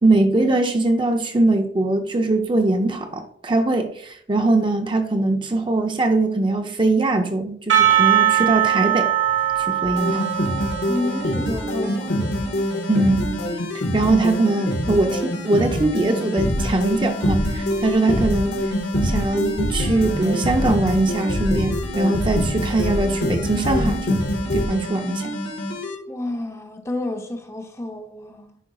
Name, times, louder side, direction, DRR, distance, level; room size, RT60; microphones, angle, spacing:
voice 1, 0.0-9.1 9.6-10.3 12.9-13.4 13.9-18.6 19.0-24.3 24.5-25.4, right 2 dB, 25° right, 0.5 m, -21 dB
Percussion / Church bell, 7.7-12.2, right 11 dB, 80° right, 1.5 m, -21 dB
sound 1, 9.8-24.7, left 1 dB, 55° left, 0.8 m, -25 dB
sound 2, 10.0-26.0, equal, 85° left, 1.7 m, -31 dB
voice 2, 10.9-12.4 26.1-28.6, left 2 dB, 15° left, 0.6 m, -30 dB
10.0 x 5.0 x 2.3 m
head